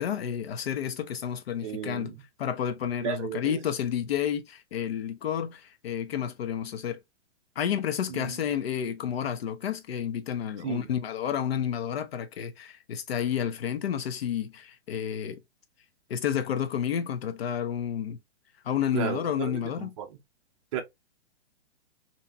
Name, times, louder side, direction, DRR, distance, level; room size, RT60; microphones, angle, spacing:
voice 1, 0.0-2.1 2.4-7.0 7.6-15.4 16.1-18.2 18.6-19.9, left 9 dB, 60° left, 0.9 m, -30 dB
voice 2, 1.6-2.2 3.0-3.6 8.1-8.5 10.6-10.9 18.9-20.2 20.7-20.8, right 9 dB, 30° right, 0.7 m, -34 dB
3.5 x 2.8 x 2.7 m
hypercardioid pair, 155°, 34 cm